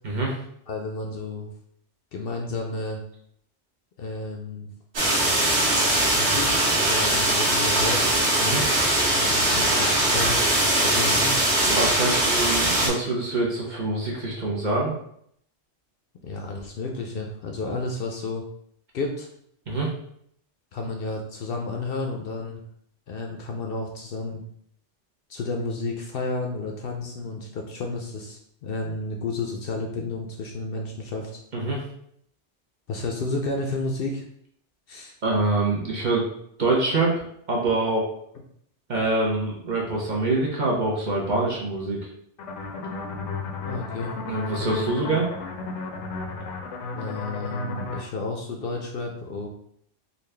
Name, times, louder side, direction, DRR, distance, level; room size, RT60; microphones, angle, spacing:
voice 1, 0.0-0.4 8.4-8.7 11.6-14.9 19.7-19.9 31.5-31.8 35.2-36.3 36.6-37.1 37.5-38.1 38.9-42.0 44.3-45.3, right 2 dB, 45° right, -3 dB, 0.9 m, -25 dB
voice 2, 0.7-1.5 2.1-3.0 4.0-4.7 6.1-8.1 9.1-10.4 10.8-11.4 16.2-18.5 18.9-19.3 20.7-22.6 23.1-24.4 25.3-31.4 32.9-34.2 34.9-35.2 43.6-44.2 46.9-49.5, left 3 dB, 65° left, 2 dB, 0.7 m, -31 dB
sound 1, 4.9-12.9, right 1 dB, 70° right, 1.2 m, -21 dB
sound 2, 42.4-48.0, left 3 dB, 85° left, 0.9 m, -34 dB
4.0 x 2.4 x 3.2 m, 0.69 s
omnidirectional pair, 1.2 m